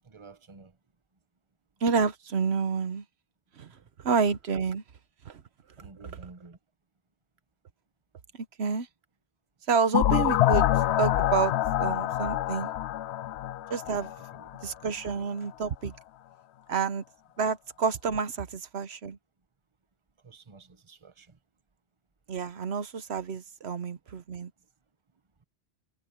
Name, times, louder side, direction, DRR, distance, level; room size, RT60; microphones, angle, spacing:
voice 1, 0.0-0.8 3.7-3.8 5.8-6.6 14.2-14.5 20.2-21.4, right 3 dB, 30° right, 1.1 m, -51 dB
voice 2, 1.8-3.0 3.6-3.7 4.0-4.8 5.2-5.4 8.4-8.9 9.7-10.7 11.0-12.7 13.7-14.1 14.6-15.9 16.7-17.0 17.4-19.2 22.3-24.5, right 5 dB, 75° right, 1.2 m, -29 dB
sound 1, 9.9-14.6, left 13 dB, 80° left, 0.8 m, -26 dB
omnidirectional pair, 1.1 m